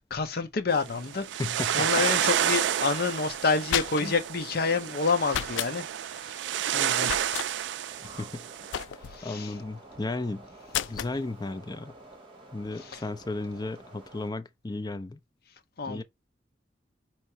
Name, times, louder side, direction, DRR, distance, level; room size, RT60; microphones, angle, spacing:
voice 1, 0.1-1.3 1.7-6.4 6.7-7.3 9.0-9.5 12.8-13.0 15.8-16.0, left 4 dB, 55° left, 0.7 m, -28 dB
sound 1, 0.7-8.8, right 10 dB, 70° right, 0.3 m, -30 dB
voice 2, 1.4-1.9 4.0-4.1 8.2-8.4 9.2-10.4 10.9-11.9 12.5-15.2 15.9-16.0, left 2 dB, 20° left, 0.5 m, -34 dB
sound 2, 3.4-4.3 5.3-5.7 7.0-7.5 8.7-9.2 10.7-11.2, left 11 dB, 85° left, 0.3 m, -32 dB
sound 3, 7.9-14.3, right 2 dB, 25° right, 1.2 m, -50 dB
4.6 x 3.0 x 2.8 m
head